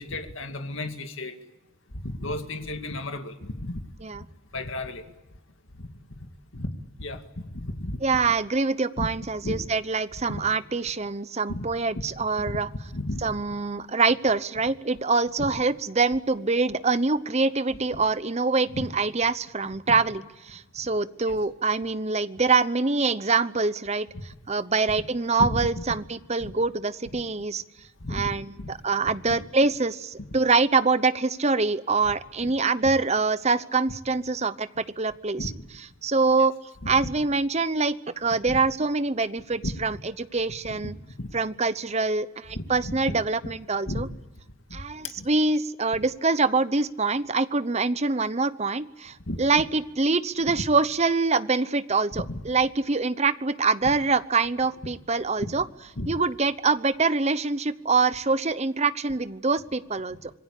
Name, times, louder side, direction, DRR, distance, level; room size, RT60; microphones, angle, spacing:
voice 1, 0.0-1.4 2.0-3.8 4.5-5.1 5.8-5.9 6.5-6.7 7.0-8.0 9.0-9.1 9.4-9.6 10.3-10.4 11.5-11.7 12.5-12.6 12.9-13.2 18.7-18.9 19.9-20.0 21.3-21.4 24.1-24.3 25.4-25.8 26.4-26.5 28.0-28.2 28.6-28.7 29.3-29.4 32.1-32.2 32.4-32.5 32.8-32.9 35.4-35.5 36.8-36.9 38.4-38.6 39.6-39.7 40.8-40.9 41.2-41.3 42.5-43.0 43.9-44.0 45.0-45.3 49.3-49.4 50.5-50.6 52.1-52.4 55.4-55.5 56.0-56.2, left 1 dB, 65° left, 6 dB, 2.1 m, -33 dB
voice 2, 8.0-12.7 13.2-24.1 24.5-27.6 28.1-35.5 36.0-36.5 36.9-40.0 40.3-40.9 41.3-44.1 44.7-55.6 56.1-60.3, right 4 dB, 30° right, 14 dB, 0.8 m, -25 dB
26.5 x 20.5 x 8.4 m, 0.99 s
head